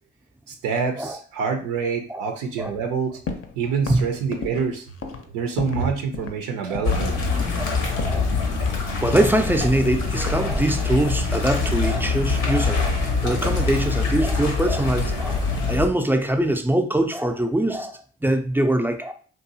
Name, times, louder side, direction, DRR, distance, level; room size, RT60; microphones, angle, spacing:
voice 1, 0.5-3.2 3.6-4.9 5.3-7.1 7.8-7.9, right 5 dB, 85° right, 0.5 m, -26 dB
sound 1, 3.3-3.6 3.9-5.9 6.1-6.4 6.7-7.1 7.4-7.7 8.0-8.8 9.1-10.5 11.4-12.3 12.6-13.1, left 5 dB, 45° left, 0.5 m, -34 dB
sound 2, 6.8-15.9, left 4 dB, 85° left, 0.7 m, -24 dB
voice 2, 8.1-8.4 9.0-12.8 13.2-19.1, right 1 dB, 5° right, 0.4 m, -23 dB
2.7 x 2.3 x 2.6 m
hypercardioid pair, 45°, 32 cm